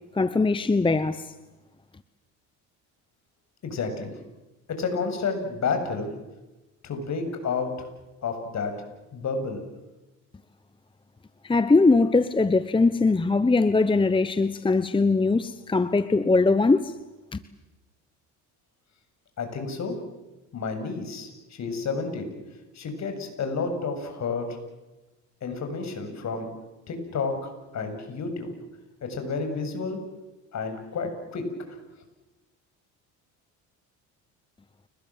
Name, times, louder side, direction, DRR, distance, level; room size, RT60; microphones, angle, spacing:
voice 1, 0.1-1.3 11.4-17.0 17.3-17.4, left 3 dB, 15° left, 1.0 m, -21 dB
voice 2, 3.6-4.1 4.7-6.1 6.8-7.7 8.2-8.8 9.1-9.6 19.4-20.0 20.5-22.3 22.7-24.6 25.4-26.5 26.9-28.5 29.0-30.0 30.5-31.5, left 4 dB, 50° left, 7.6 m, -30 dB
29.5 x 21.0 x 7.5 m
supercardioid pair, 90°, 36 cm